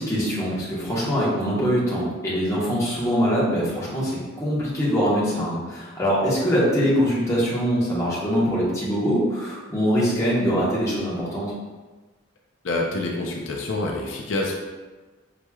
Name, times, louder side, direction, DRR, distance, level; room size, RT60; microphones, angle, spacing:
voice 1, 0.0-11.5, equal, 15° left, -8 dB, 1.1 m, -23 dB
voice 2, 12.6-14.6, left 2 dB, 75° left, 0 dB, 0.6 m, -27 dB
5.9 x 3.0 x 2.3 m, 1.3 s
head